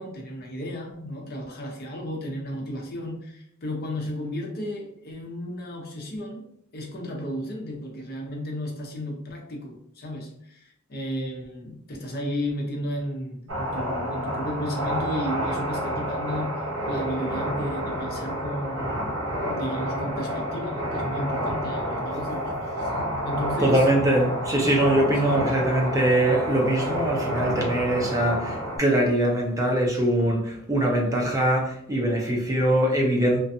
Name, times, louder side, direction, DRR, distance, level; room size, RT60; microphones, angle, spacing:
voice 1, 0.0-6.5 6.7-19.1 19.5-22.9 23.2-23.9 25.1-25.4, equal, 45° left, 0.6 m, -33 dB
sound 1, 13.5-28.8, equal, 70° right, 0.9 m, -29 dB
voice 2, 23.6-33.4, right 1 dB, 15° right, 0.5 m, -22 dB
2.4 x 2.2 x 2.6 m
head